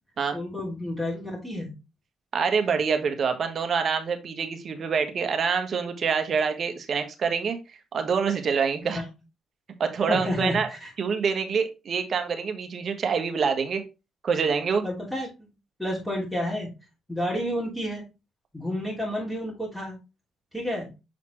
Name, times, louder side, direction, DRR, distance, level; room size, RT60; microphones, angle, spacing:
voice 1, 0.3-1.7 8.8-9.1 10.0-10.9 14.8-15.5 15.8-16.7 17.1-18.1 18.5-20.0 20.5-20.9, left 1 dB, 5° left, -5 dB, 2.8 m, -30 dB
voice 2, 2.3-7.6 7.9-9.0 9.8-10.7 11.0-13.8 14.2-14.8, right 6 dB, 50° right, 7 dB, 1.3 m, -26 dB
7.2 x 4.1 x 3.1 m, 0.27 s
cardioid pair, 80°, 0 cm